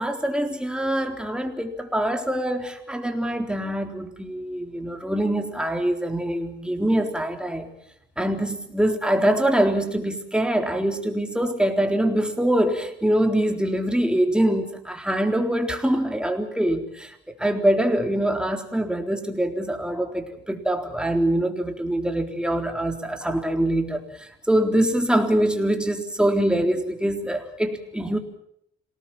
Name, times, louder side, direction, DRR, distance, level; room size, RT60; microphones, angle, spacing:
voice 1, 0.0-7.7 8.2-28.2, right 1 dB, 5° right, 4 dB, 3.8 m, -24 dB
27.0 x 19.0 x 7.6 m, 0.72 s
cardioid pair, 90°, 20 cm